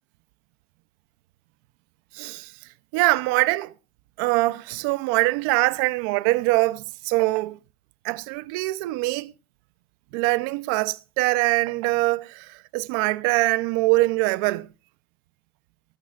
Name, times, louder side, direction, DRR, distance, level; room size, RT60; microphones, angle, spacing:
voice 1, 2.1-2.5 2.9-3.7 4.2-7.6 8.0-9.3 10.1-14.7, right 21 dB, 85° right, 0.7 m, -23 dB
19.0 x 14.0 x 2.5 m
cardioid pair, 135°, 11 cm